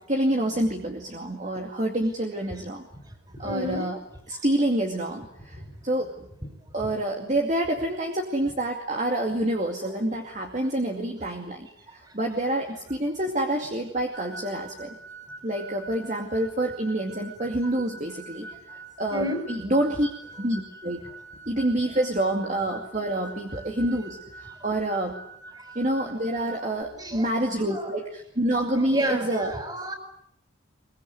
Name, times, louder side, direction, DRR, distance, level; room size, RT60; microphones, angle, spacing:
voice 1, 0.0-2.8 3.4-4.0 4.3-6.1 6.7-11.7 11.9-14.9 15.4-18.5 19.0-20.1 20.4-21.0 21.5-25.1 25.8-29.5, right 1 dB, 40° right, 2 dB, 2.4 m, -27 dB
voice 2, 3.4-3.9 4.3-4.4 6.8-6.9 11.9-12.0 19.1-19.4 25.6-25.7 27.0-27.3 27.6-27.9 28.8-29.9, equal, 20° right, 7 dB, 5.2 m, -31 dB
sound 1, 14.1-26.8, right 3 dB, 10° left, 2.9 m, -45 dB
23.5 x 22.0 x 9.5 m, 0.74 s
head